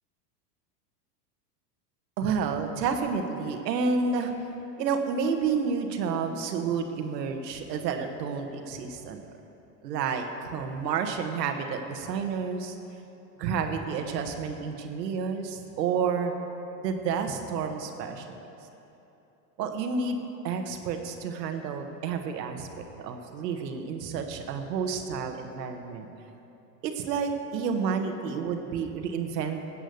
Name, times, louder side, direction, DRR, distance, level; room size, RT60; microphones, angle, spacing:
voice 1, 2.2-4.3 4.8-9.2 9.8-12.8 13.4-16.3 16.8-18.4 19.6-26.1 26.8-29.6, right 5 dB, 80° right, 5 dB, 1.5 m, -30 dB
14.5 x 8.8 x 6.8 m, 3.0 s
supercardioid pair, 130°, 48 cm